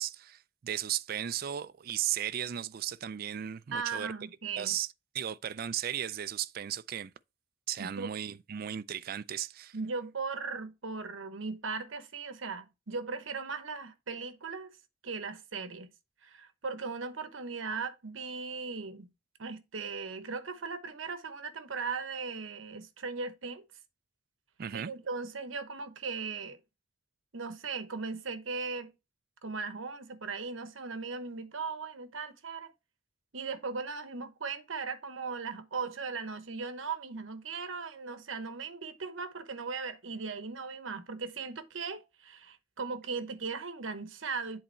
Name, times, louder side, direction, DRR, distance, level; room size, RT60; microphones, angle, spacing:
voice 1, 0.0-4.1 4.6-4.9 5.1-7.1 7.7-9.8 24.6-24.9, right 10 dB, 50° right, 0.4 m, -35 dB
voice 2, 3.7-4.8 7.8-8.2 9.7-14.8 15.0-15.9 16.2-19.1 19.4-23.6 24.7-26.6 27.3-28.9 29.4-32.7 33.3-44.6, right 4 dB, 80° right, 0.9 m, -38 dB
7.8 x 4.0 x 4.4 m
head